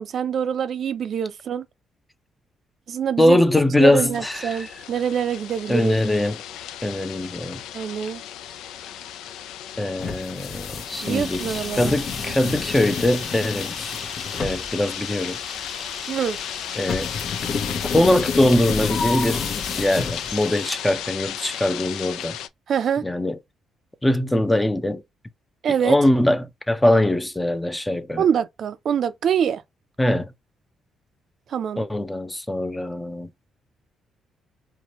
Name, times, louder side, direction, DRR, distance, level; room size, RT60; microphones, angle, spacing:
voice 1, 0.0-1.6 2.9-3.4 3.8-5.9 7.7-8.2 11.0-11.9 12.3-12.4 16.1-16.4 22.7-23.0 25.6-26.0 28.2-29.6 31.5-31.8, right 8 dB, 60° right, 0.4 m, -25 dB
voice 2, 3.2-4.7 5.7-6.4 6.8-7.6 9.8-13.7 14.4-15.4 16.8-17.1 17.9-19.4 19.8-22.4 23.0-23.4 24.0-25.0 25.8-28.2 30.0-30.3 31.8-33.3, left 1 dB, 10° left, 0.5 m, -22 dB
sound 1, 4.1-22.5, left 11 dB, 90° left, 0.3 m, -35 dB
sound 2, 10.0-20.6, left 5 dB, 55° left, 0.9 m, -30 dB
Camera, 10.9-20.8, left 2 dB, 30° left, 1.2 m, -38 dB
4.5 x 2.2 x 2.8 m
cardioid pair, 90°, 0 cm